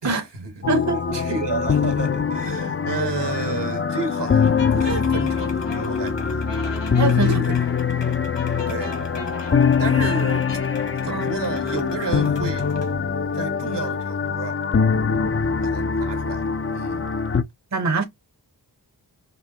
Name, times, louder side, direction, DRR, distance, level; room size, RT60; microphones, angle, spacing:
voice 1, 0.0-0.9 1.1-6.5 7.2-7.7 8.0-8.2 8.7-9.0 9.8-10.5 10.9-12.7 13.3-14.6 15.6-16.5 16.7-17.1, right 4 dB, 75° right, 1.6 m, -31 dB
sound 1, 0.6-17.4, left 6 dB, 30° left, 0.5 m, -23 dB
voice 2, 0.7-1.2 6.9-7.3 11.1-11.2 17.7-18.0, right 3 dB, 40° right, 0.9 m, -23 dB
sound 2, 4.4-12.9, left 4 dB, 85° left, 1.3 m, -37 dB
5.3 x 2.9 x 2.8 m
wide cardioid pair, 55°, 42 cm